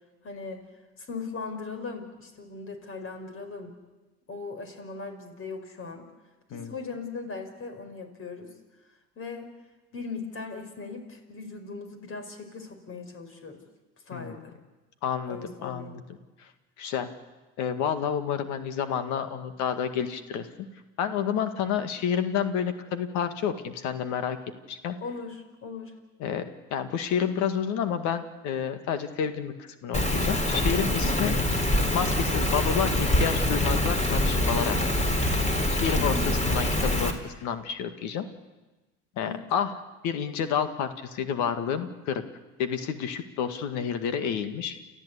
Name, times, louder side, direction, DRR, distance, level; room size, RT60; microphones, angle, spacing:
voice 1, 0.2-0.6 1.0-3.7 4.3-6.0 6.5-8.5 9.2-9.5 9.9-13.6 14.1-14.5 15.3-16.0 25.0-25.9 31.0-31.3 36.0-36.3 39.2-39.5, left 4 dB, 45° left, 6 dB, 5.4 m, -39 dB
voice 2, 14.1-14.4 15.0-16.0 16.8-17.1 17.6-20.7 21.0-24.4 24.7-25.0 26.2-26.5 26.7-31.4 31.9-34.8 35.7-38.3 39.2-39.7 40.0-42.2 42.6-44.8, left 8 dB, 70° left, 9 dB, 2.0 m, -29 dB
Rain, 29.9-37.1, left 1 dB, 25° left, 3.9 m, -25 dB
30.0 x 13.5 x 8.4 m, 1.2 s
hypercardioid pair, 70°, 30 cm